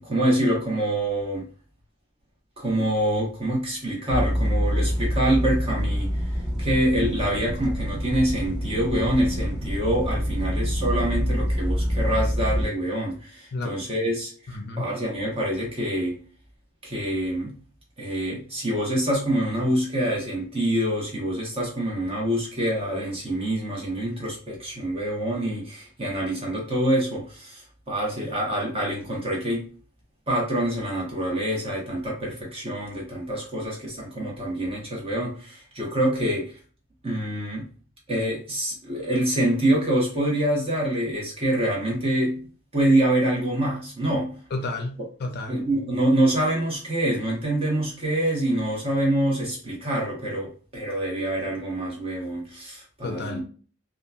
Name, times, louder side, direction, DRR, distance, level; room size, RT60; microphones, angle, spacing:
voice 1, 0.0-1.4 2.6-6.1 6.6-14.3 14.8-16.2 16.8-17.5 18.0-29.7 30.3-36.6 37.0-37.6 38.1-42.4 42.7-44.3 45.5-53.4, right 1 dB, 30° right, 1.0 m, -26 dB
sound 1, 4.1-12.7, equal, 5° right, 1.5 m, -26 dB
voice 2, 14.5-14.9 44.5-45.6 53.0-53.4, left 2 dB, 50° left, 0.4 m, -31 dB
2.8 x 2.3 x 2.3 m
head